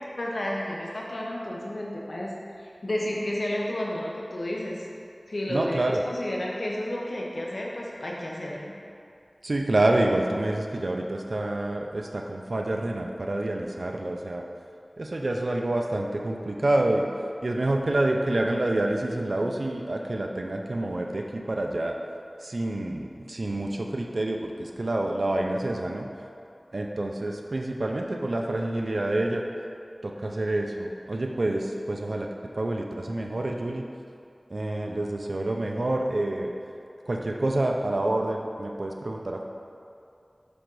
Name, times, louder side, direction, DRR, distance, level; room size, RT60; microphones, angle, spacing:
voice 1, 0.2-4.9 5.3-8.7, left 1 dB, 80° left, -3 dB, 0.8 m, -32 dB
voice 2, 5.5-6.0 9.4-14.4 15.0-17.1 17.4-22.0 22.4-26.1 26.7-29.4 30.0-32.3 32.6-33.8 34.5-36.5 37.1-39.4, right 1 dB, 75° right, 1 dB, 0.5 m, -27 dB
5.1 x 5.0 x 6.0 m, 2.5 s
wide cardioid pair, 50°, 0 cm